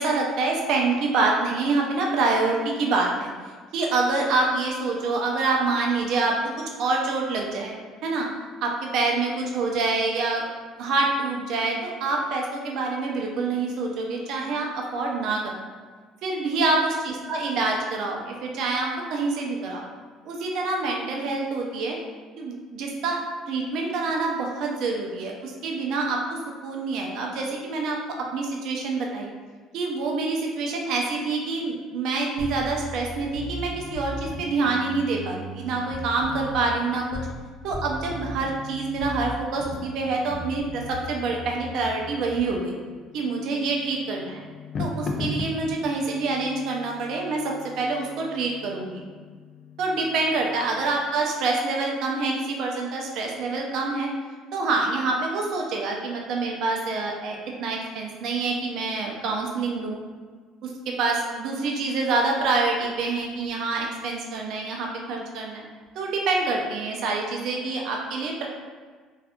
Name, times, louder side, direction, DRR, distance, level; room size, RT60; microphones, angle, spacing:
voice 1, 0.0-3.3 3.7-6.5 6.8-7.8 8.0-8.3 8.6-10.4 10.8-15.6 16.2-19.9 20.3-22.0 22.4-23.2 23.5-28.0 28.3-29.3 29.7-37.2 37.6-42.8 43.1-44.4 44.8-49.1 49.8-54.1 54.5-60.0 60.6-65.7 66.0-68.5, right 3 dB, 65° right, 0 dB, 0.5 m, -26 dB
sound 1, 32.4-37.4 37.7-42.5, left 1 dB, 85° left, 0.7 m, -37 dB
sound 2, 40.9-51.0, left 3 dB, 40° left, 0.4 m, -39 dB
2.6 x 2.4 x 3.5 m, 1.5 s
cardioid pair, 115°, 0 cm